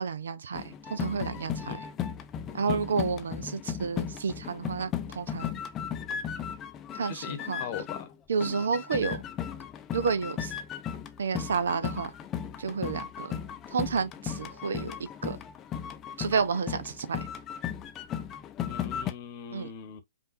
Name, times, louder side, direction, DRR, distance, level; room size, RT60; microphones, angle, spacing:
voice 1, 0.0-1.8 2.5-5.6 6.9-7.6 8.3-9.2 9.9-10.5 11.2-12.1 12.6-13.3 13.7-15.4 16.2-17.2 19.5-19.7, right 5 dB, 60° right, 0.5 m, -30 dB
sound 1, 0.5-8.1 8.4-19.1, left 8 dB, 20° left, 0.5 m, -36 dB
voice 2, 7.1-8.1 18.7-20.0, left 9 dB, 35° left, 1.0 m, -40 dB
5.4 x 2.6 x 2.5 m
figure-of-eight pair, 120°, 0 cm